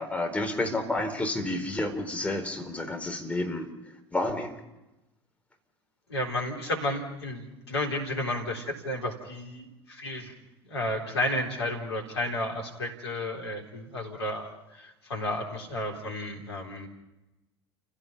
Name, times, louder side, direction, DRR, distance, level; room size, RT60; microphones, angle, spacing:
voice 1, 0.0-3.7 4.1-4.6, left 2 dB, 10° left, 3 dB, 4.3 m, -30 dB
voice 2, 6.1-10.3 10.7-16.9, left 1 dB, 80° left, 1 dB, 4.0 m, -32 dB
30.0 x 16.5 x 5.7 m, 0.99 s
figure-of-eight pair, 70°, 14 cm